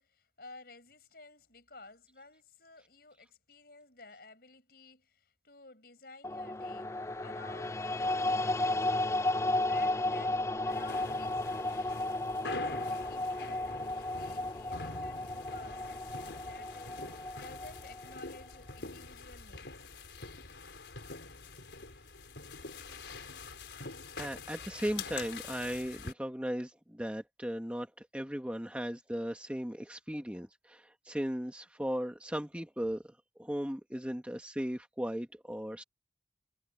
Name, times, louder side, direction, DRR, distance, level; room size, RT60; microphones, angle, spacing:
voice 1, 0.0-9.1 9.6-12.0 12.5-17.1 17.4-19.7, left 3 dB, 55° left, 7.6 m, -54 dB
sound 1, 6.2-18.5, left 2 dB, 15° left, 0.3 m, -34 dB
sound 2, 10.7-26.1, left 3 dB, 75° left, 4.4 m, -45 dB
voice 2, 24.2-33.0 33.4-35.8, equal, 5° right, 1.3 m, -37 dB
head